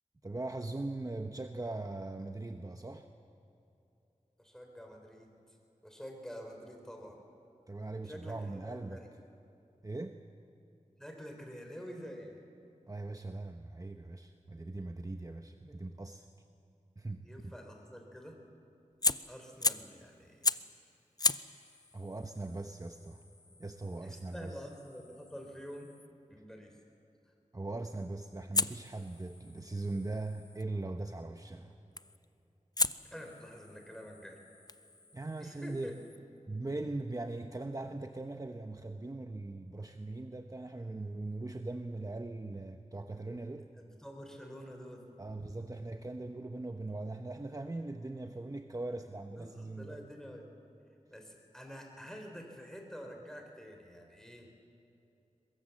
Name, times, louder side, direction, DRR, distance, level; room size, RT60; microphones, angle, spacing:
voice 1, 0.2-3.1 7.7-9.0 9.8-10.2 12.9-16.3 17.0-17.5 21.9-23.2 23.6-24.6 27.5-31.7 35.1-36.0 36.5-43.7 45.2-50.1, right 2 dB, 25° right, 6 dB, 0.9 m, -40 dB
voice 2, 4.4-5.3 5.8-7.2 8.0-9.1 11.0-12.4 17.2-18.4 19.3-20.6 24.0-25.9 26.3-26.7 33.1-34.4 35.4-35.9 43.8-45.1 45.4-45.7 49.4-50.5 51.1-54.5, equal, 5° left, 2 dB, 4.2 m, -48 dB
Fire, 18.9-20.0 20.4-20.8 21.2-26.1 28.5-30.6 32.0-32.3 32.8-36.2, left 3 dB, 30° left, 0.5 m, -37 dB
22.5 x 22.0 x 7.4 m, 2.8 s
wide cardioid pair, 70°, 13 cm